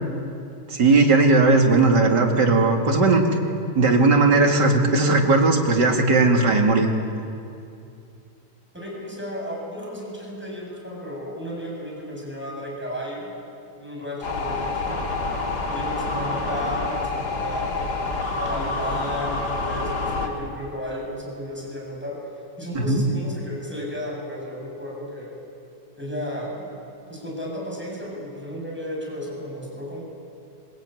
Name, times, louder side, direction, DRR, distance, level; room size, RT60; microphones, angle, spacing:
voice 1, 0.7-3.3 3.8-6.9 22.7-23.0, right 3 dB, 65° right, 2 dB, 3.1 m, -17 dB
voice 2, 8.7-13.3 13.8-15.1 15.7-17.9 18.4-22.2 22.6-25.3 26.0-26.7 27.1-30.0, equal, 5° right, -3 dB, 7.6 m, -33 dB
sound 1, 14.2-20.3, left 3 dB, 60° left, 2.8 m, -27 dB
23.5 x 21.0 x 9.3 m, 2.6 s
omnidirectional pair, 2.0 m